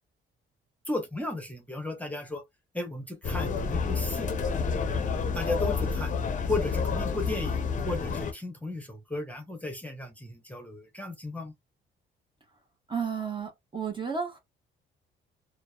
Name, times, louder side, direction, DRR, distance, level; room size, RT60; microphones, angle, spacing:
voice 1, 0.9-2.4 2.7-4.3 5.3-6.1 6.5-11.5, left 2 dB, 5° left, 0.8 m, -34 dB
sound 1, 3.2-8.3, left 5 dB, 40° left, 0.5 m, -29 dB
voice 2, 12.9-14.4, right 6 dB, 25° right, 0.8 m, -32 dB
2.7 x 2.0 x 2.2 m
cardioid pair, 90°, 20 cm